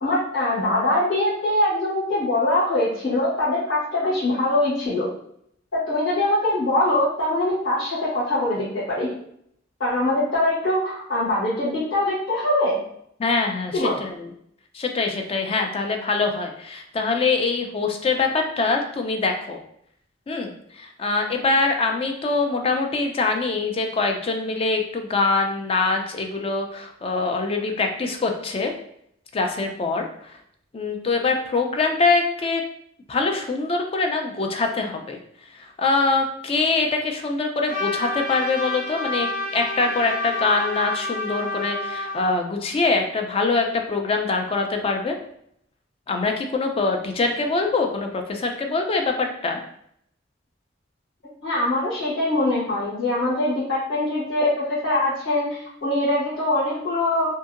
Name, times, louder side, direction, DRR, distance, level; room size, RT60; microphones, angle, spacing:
voice 1, 0.0-5.1 5.9-9.1 9.8-12.8 13.7-14.0 51.4-57.3, left 1 dB, 80° left, -12 dB, 1.3 m, -23 dB
voice 2, 13.2-14.3 14.7-19.6 20.3-28.7 29.3-30.4 30.7-32.6 33.1-35.2 35.5-45.2 46.1-49.6, left 3 dB, 30° left, 3 dB, 0.4 m, -24 dB
Trumpet, 37.7-42.4, left 2 dB, 50° left, 0.9 m, -29 dB
2.7 x 2.7 x 2.5 m, 0.70 s
head